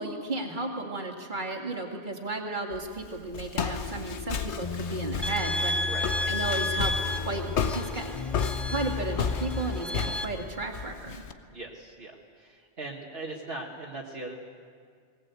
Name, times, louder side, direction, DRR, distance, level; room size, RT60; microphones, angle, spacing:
voice 1, 0.0-5.7 6.3-8.1 8.7-11.2, right 2 dB, 45° right, 3 dB, 2.2 m, -34 dB
Walk footsteps, 2.7-11.3, left 6 dB, 85° left, 1.3 m, -34 dB
sound 1, 3.6-9.8, left 5 dB, 40° left, 0.5 m, -36 dB
sound 2, 5.2-10.2, left 1 dB, ahead, 0.8 m, -32 dB
voice 2, 5.8-6.3 11.5-14.3, right 2 dB, 60° right, -2 dB, 1.8 m, -40 dB
20.0 x 19.0 x 8.2 m, 2.1 s
omnidirectional pair, 1.1 m